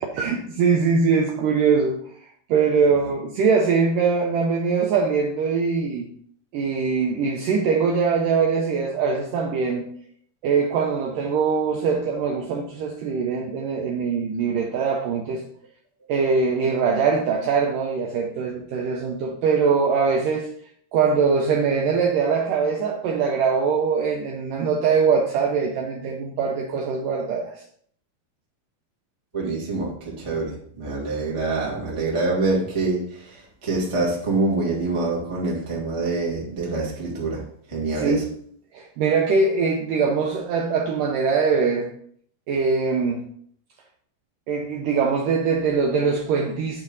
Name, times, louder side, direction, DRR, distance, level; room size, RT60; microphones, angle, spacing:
voice 1, 0.1-2.0 2.5-6.1 6.5-9.9 10.4-15.4 16.1-20.5 20.9-27.6 37.9-38.3 38.7-41.9 42.5-43.2 44.5-46.8, right 5 dB, 80° right, 0 dB, 2.0 m, -22 dB
voice 2, 29.3-37.4 37.7-38.2, right 3 dB, 15° right, -5 dB, 1.0 m, -25 dB
8.8 x 4.4 x 4.1 m, 0.62 s
omnidirectional pair, 4.6 m